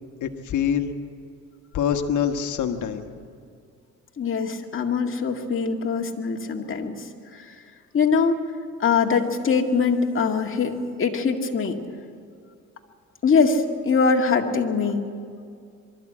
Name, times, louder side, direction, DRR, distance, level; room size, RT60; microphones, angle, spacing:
voice 1, 0.2-0.9 1.7-3.1, left 8 dB, 75° left, 7 dB, 1.5 m, -25 dB
voice 2, 4.2-7.0 7.9-8.4 8.8-11.8 13.2-15.0, left 5 dB, 45° left, 2 dB, 2.0 m, -22 dB
23.5 x 13.0 x 8.6 m, 2.3 s
cardioid pair, 90°, 30 cm